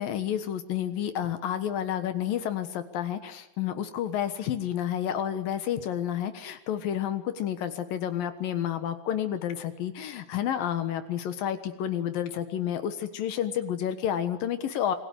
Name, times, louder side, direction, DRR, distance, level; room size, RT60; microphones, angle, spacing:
voice 1, 0.0-15.0, left 10 dB, 75° left, 10 dB, 3.1 m, -30 dB
27.5 x 21.5 x 9.7 m, 0.84 s
omnidirectional pair, 4.1 m